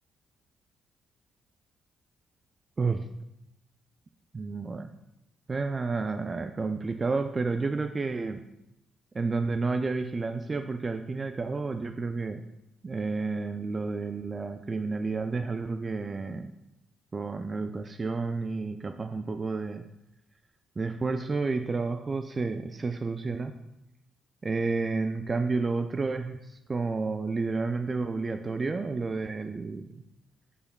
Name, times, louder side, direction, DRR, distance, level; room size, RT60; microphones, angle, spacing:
voice 1, 4.3-4.9 5.5-8.4 9.1-12.4 12.8-16.5 17.1-19.8 20.8-23.5 24.4-30.0, right 4 dB, 35° right, 8 dB, 0.3 m, -31 dB
9.7 x 4.8 x 2.2 m, 0.86 s
hypercardioid pair, 50°, 0 cm